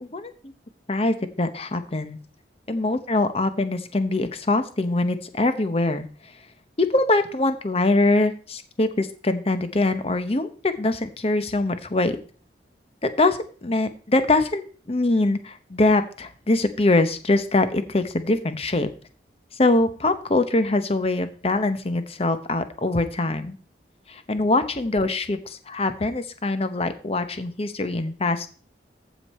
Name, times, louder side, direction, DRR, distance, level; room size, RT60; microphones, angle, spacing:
voice 1, 0.0-0.3 0.9-2.2 2.7-6.1 6.8-12.2 13.0-14.6 14.9-18.9 19.6-23.6 24.1-28.6, left 2 dB, 35° left, 10 dB, 0.8 m, -23 dB
14.5 x 5.2 x 4.2 m, 0.40 s
head